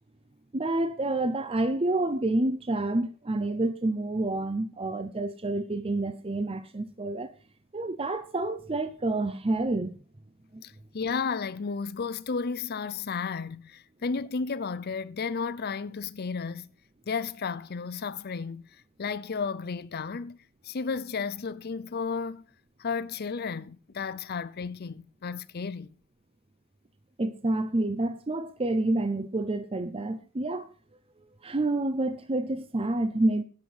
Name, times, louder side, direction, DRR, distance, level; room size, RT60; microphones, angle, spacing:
voice 1, 0.5-7.3 7.7-10.0 10.5-10.6 27.2-30.7 31.4-33.4, right 2 dB, 25° right, 0.6 m, -28 dB
voice 2, 10.6-16.7 17.1-20.4 20.6-22.4 22.8-25.9, left 5 dB, 45° left, 0.5 m, -33 dB
10.5 x 8.2 x 5.5 m
head